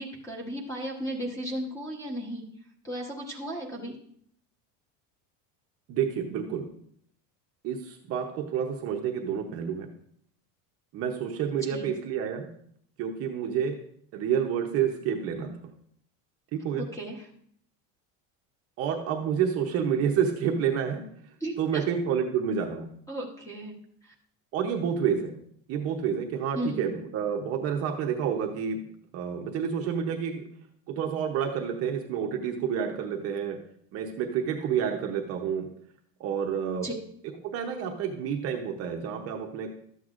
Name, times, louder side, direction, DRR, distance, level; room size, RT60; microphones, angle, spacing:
voice 1, 0.0-2.4 2.8-3.9 11.7-11.9 16.7-17.2 21.4-21.8 23.1-23.8 24.0-24.1 26.5-26.9 36.8-36.9, right 1 dB, 5° left, 1 dB, 1.0 m, -35 dB
voice 2, 5.9-6.7 7.6-9.9 10.9-12.5 13.0-13.8 14.1-15.5 16.5-16.8 18.8-21.0 21.6-22.9 24.5-25.3 25.7-28.8 29.1-30.5 30.9-33.6 33.9-35.7 36.2-36.9 37.4-39.7, right 7 dB, 35° right, 2 dB, 0.7 m, -29 dB
13.0 x 7.8 x 2.5 m, 0.66 s
cardioid pair, 175°, 41 cm